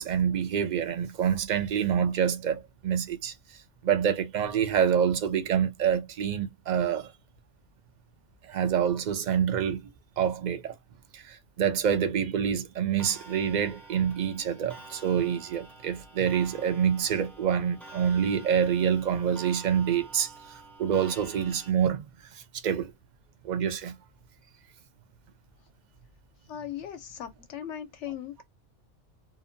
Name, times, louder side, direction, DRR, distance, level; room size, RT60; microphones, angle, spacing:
voice 1, 0.0-3.3 3.8-7.1 8.5-9.9 10.2-10.7 11.1-20.3 20.8-22.0 22.3-22.9 23.4-23.9, right 8 dB, 55° right, 0.5 m, -27 dB
Clock, 13.0-21.7, right 3 dB, ahead, 0.4 m, -48 dB
voice 2, 26.5-28.4, left 10 dB, 80° left, 0.9 m, -38 dB
2.7 x 2.1 x 2.5 m
omnidirectional pair, 1.2 m